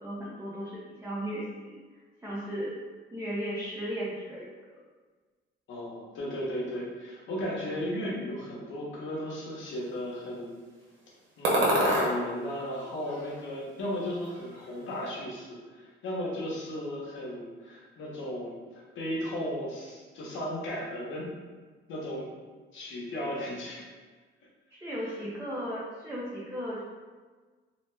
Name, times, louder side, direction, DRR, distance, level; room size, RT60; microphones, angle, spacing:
voice 1, 0.0-1.8 2.2-2.7 3.1-4.8 24.7-26.8, equal, 15° right, -7 dB, 0.6 m, -36 dB
voice 2, 5.7-10.5 11.4-18.5 18.9-21.3 21.9-22.3 22.7-23.9, equal, 75° left, -5 dB, 0.9 m, -35 dB
sound 1, 11.4-12.1 12.7-13.7 13.9-14.7, right 1 dB, 75° right, 0.9 m, -28 dB
2.7 x 2.1 x 3.2 m, 1.4 s
cardioid pair, 90°, 20 cm